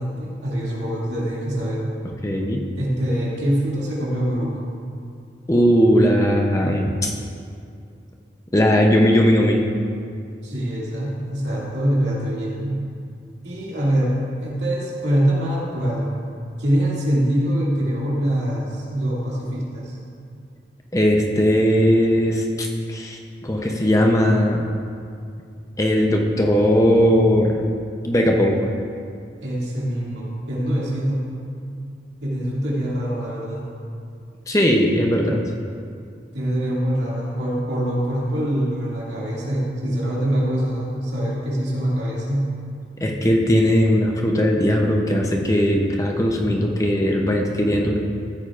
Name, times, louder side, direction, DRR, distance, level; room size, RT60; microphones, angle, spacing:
voice 1, 0.0-1.9 2.8-4.6 10.4-12.8 13.4-16.1 16.6-19.9 29.4-31.3 32.2-33.6 36.3-42.6, equal, 70° right, -5 dB, 2.4 m, -24 dB
voice 2, 2.2-2.6 5.5-7.1 8.5-9.6 20.9-24.7 25.8-27.6 28.0-28.6 34.5-35.4 43.0-48.0, equal, 15° left, 0 dB, 0.7 m, -18 dB
15.0 x 8.9 x 2.5 m, 2.4 s
head